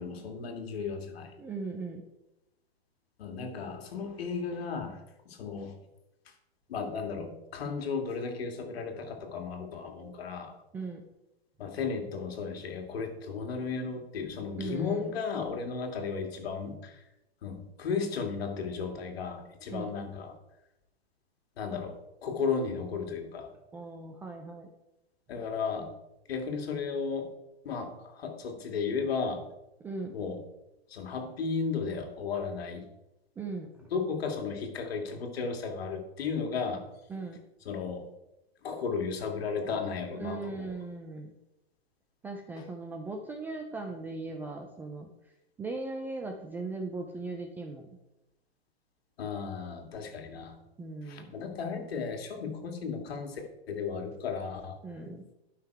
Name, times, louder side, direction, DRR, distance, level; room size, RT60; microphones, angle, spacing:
voice 1, 0.0-1.3 3.2-5.8 6.3-6.4 6.7-10.5 11.6-17.1 17.4-20.4 21.6-23.5 25.3-25.9 26.3-27.3 27.6-29.4 30.1-30.4 30.9-32.9 33.9-36.8 37.7-38.1 38.6-40.7 42.6-42.7 49.2-50.6 51.0-53.4 53.7-54.8, left 5 dB, 70° left, 4 dB, 2.1 m, -34 dB
voice 2, 1.4-2.0 10.7-11.0 14.6-15.2 19.7-19.9 23.7-24.7 29.8-30.2 33.4-33.9 37.1-37.4 40.1-41.3 42.2-45.1 45.6-47.9 50.8-51.3 54.8-55.3, right 3 dB, 5° right, 3 dB, 0.3 m, -38 dB
11.5 x 5.8 x 4.6 m, 0.93 s
hypercardioid pair, 135°, 31 cm